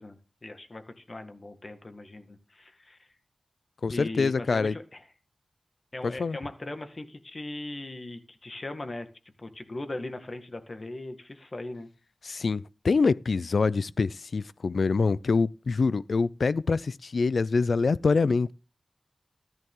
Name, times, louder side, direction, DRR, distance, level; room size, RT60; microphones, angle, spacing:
voice 1, 0.0-3.1 3.9-5.0 5.9-9.1 9.4-11.9, left 2 dB, 40° left, 1.8 m, -39 dB
voice 2, 3.8-4.7 6.0-6.4 12.2-18.5, left 4 dB, 70° left, 0.5 m, -25 dB
14.0 x 10.5 x 3.8 m
wide cardioid pair, 100°, 0 cm